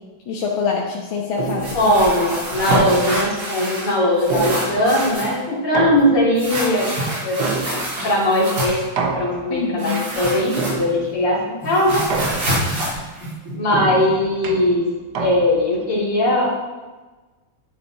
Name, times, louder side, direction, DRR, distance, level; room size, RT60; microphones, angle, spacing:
voice 1, 0.3-1.9 9.5-10.2, left 6 dB, 70° left, -3 dB, 2.0 m, -25 dB
sound 1, 1.4-1.9 2.7-3.4 4.3-5.1 5.7-6.5 7.4-8.1 9.0-9.7 10.6-11.2 12.1-12.8 13.7-15.8, right 4 dB, 55° right, 1.5 m, -27 dB
sound 2, 1.4-3.9 4.2-5.4 6.4-8.9 9.8-11.1 11.4-14.0, equal, 75° right, 4.7 m, -26 dB
voice 2, 1.7-7.5 8.0-11.4 11.6-12.0 13.5-14.9 15.2-16.5, left 1 dB, 90° left, -5 dB, 3.8 m, -19 dB
11.0 x 10.5 x 4.1 m, 1.2 s
omnidirectional pair, 2.4 m